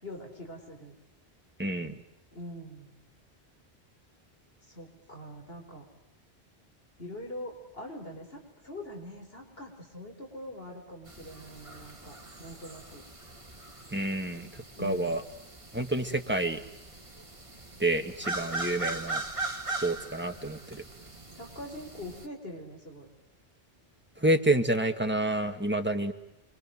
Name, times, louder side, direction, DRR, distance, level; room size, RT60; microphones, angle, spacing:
voice 1, 0.0-0.9 2.3-3.0 4.6-5.9 7.0-13.0 14.8-15.2 21.3-23.1, left 1 dB, 65° left, 2 dB, 4.6 m, -43 dB
voice 2, 1.6-2.0 13.9-15.2 15.7-16.6 17.8-19.2 19.8-20.8 24.2-26.1, right 1 dB, 10° right, 4 dB, 2.0 m, -28 dB
sound 1, 11.1-22.3, right 3 dB, 30° right, 2.2 m, -40 dB
29.0 x 23.5 x 7.7 m, 0.89 s
omnidirectional pair, 1.1 m